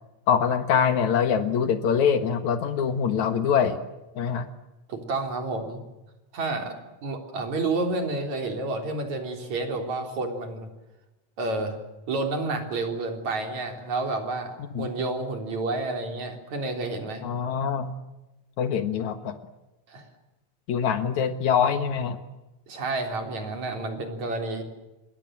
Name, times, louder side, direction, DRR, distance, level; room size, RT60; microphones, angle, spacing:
voice 1, 0.3-3.8 4.2-4.5 14.6-14.9 17.2-17.9 18.6-19.4 20.7-22.2, left 7 dB, 80° left, 9 dB, 2.9 m, -24 dB
voice 2, 4.9-5.8 6.3-6.7 7.0-10.7 11.4-11.8 12.1-17.2 19.9-20.1 22.7-24.6, right 3 dB, 75° right, 5 dB, 5.0 m, -30 dB
27.0 x 21.5 x 7.6 m, 1.0 s
omnidirectional pair, 3.3 m